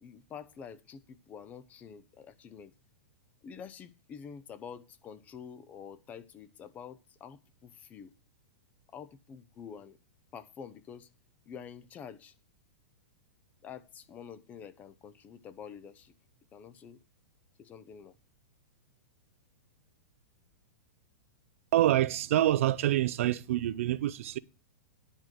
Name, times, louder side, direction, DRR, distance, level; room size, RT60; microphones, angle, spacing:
voice 1, 0.0-2.7 3.4-8.1 8.9-10.0 10.3-11.1 11.5-12.3 13.6-16.1 16.5-17.0 17.6-18.1, left 7 dB, 20° left, 0.7 m, -47 dB
voice 2, 21.7-24.4, right 13 dB, 60° right, 0.6 m, -26 dB
10.0 x 4.5 x 7.8 m
supercardioid pair, 160°, 8 cm